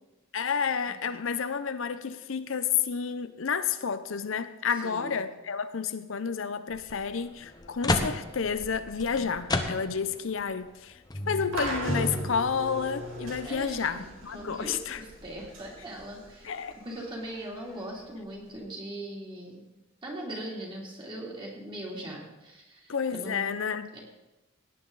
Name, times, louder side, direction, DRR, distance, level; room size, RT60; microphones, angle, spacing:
voice 1, 0.3-11.0 11.3-15.0 16.4-16.7 22.9-23.9, left 6 dB, 70° left, 11 dB, 0.6 m, -30 dB
voice 2, 4.8-5.2 13.4-14.0 14.3-16.5 16.8-19.6 20.0-23.5 23.9-24.0, right 1 dB, 25° right, -3 dB, 3.0 m, -40 dB
sound 1, 6.7-6.9 7.4-10.2 10.6-10.7 11.1-12.4, left 1 dB, 20° left, 0.9 m, -31 dB
sound 2, 11.5-18.6, right 1 dB, 75° right, 4.0 m, -40 dB
17.5 x 9.7 x 4.0 m, 1.0 s
head